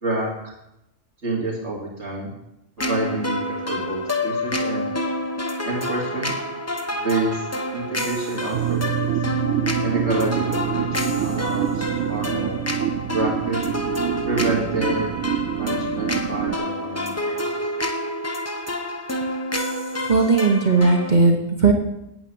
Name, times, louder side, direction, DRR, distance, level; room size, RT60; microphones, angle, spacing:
voice 1, 0.0-0.5 1.2-2.3 2.8-4.9 5.6-6.3 6.9-7.4 7.7-9.1 9.8-12.6 13.1-13.7 14.2-15.1 15.5-17.5, right 2 dB, 65° right, -3 dB, 2.5 m, -28 dB
sound 1, 2.8-21.1, left 1 dB, 15° left, 0.9 m, -28 dB
sound 2, 8.5-16.6, right 11 dB, 90° right, 1.0 m, -26 dB
voice 2, 20.1-21.7, right 4 dB, 40° right, 2 dB, 1.3 m, -17 dB
9.1 x 7.5 x 8.7 m, 0.86 s
omnidirectional pair, 1.3 m